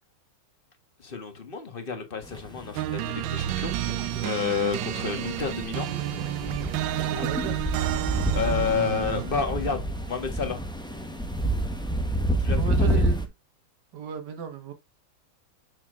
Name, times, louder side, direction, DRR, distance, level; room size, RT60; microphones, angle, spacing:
voice 1, 1.0-3.7 4.2-5.9 7.1-7.2 8.3-9.8 10.1-10.6 12.4-12.6 12.9-13.0, left 6 dB, 30° left, 1.4 m, -30 dB
sound 1, 2.2-13.3, right 1 dB, 5° left, 0.4 m, -29 dB
sound 2, 2.8-9.5, right 13 dB, 75° right, 1.3 m, -30 dB
voice 2, 6.9-7.6 12.5-13.2 13.9-14.7, right 5 dB, 60° right, 1.9 m, -34 dB
7.0 x 6.3 x 2.5 m
omnidirectional pair, 2.2 m